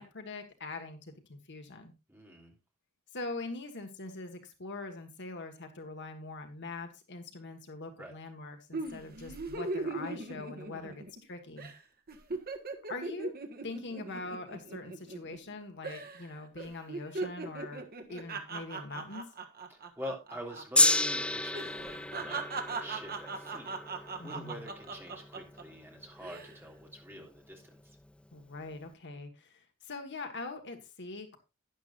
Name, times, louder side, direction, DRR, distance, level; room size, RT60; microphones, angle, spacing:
voice 1, 0.0-1.9 3.1-11.7 12.9-13.3 13.6-17.8 18.1-19.2 24.2-24.7 28.3-31.4, left 3 dB, 55° left, 6 dB, 1.7 m, -43 dB
voice 2, 2.1-2.6 8.0-8.1 10.7-10.9 19.7-22.4 22.7-28.0, equal, 10° right, 0 dB, 3.1 m, -46 dB
sound 1, 8.7-11.3 11.6-11.8 12.1-15.5 15.8-16.3 16.6-20.6 20.9-21.1 21.5-25.6 26.1-26.5, right 3 dB, 45° right, 1.6 m, -39 dB
Gong, 20.8-27.1 27.9-28.0, left 2 dB, 5° left, 0.4 m, -32 dB
12.0 x 10.5 x 2.5 m, 0.27 s
head